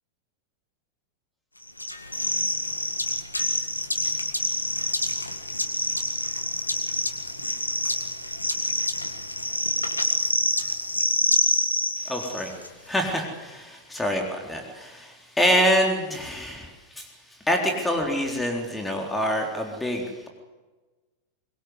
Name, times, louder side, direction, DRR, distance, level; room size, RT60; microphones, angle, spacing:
sound 1, 1.8-12.7, left 1 dB, 85° left, 1.8 m, -27 dB
voice 1, 12.0-17.1 17.5-20.3, equal, 5° left, 2 dB, 4.0 m, -26 dB
24.0 x 22.5 x 8.2 m, 1.2 s
figure-of-eight pair, 90°, 0 cm